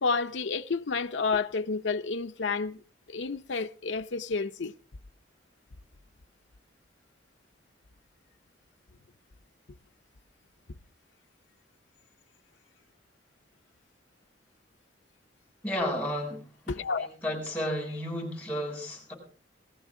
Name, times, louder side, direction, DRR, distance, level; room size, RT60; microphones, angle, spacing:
voice 1, 0.0-2.8 3.1-4.7 16.7-17.1, left 4 dB, 75° left, 0.6 m, -30 dB
voice 2, 15.6-16.4 16.7-19.1, equal, 5° left, 7.9 m, -33 dB
20.5 x 16.0 x 3.7 m
head